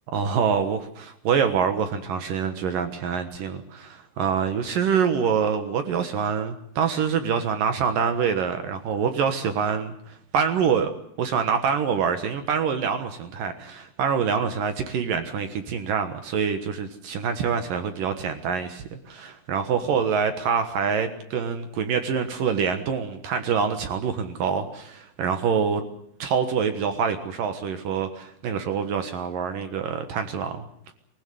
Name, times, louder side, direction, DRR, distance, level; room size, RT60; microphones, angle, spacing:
voice 1, 0.1-10.9 11.2-25.8 26.2-30.9, right 6 dB, 65° right, 8 dB, 2.3 m, -25 dB
23.5 x 16.5 x 9.3 m, 0.67 s
omnidirectional pair, 5.6 m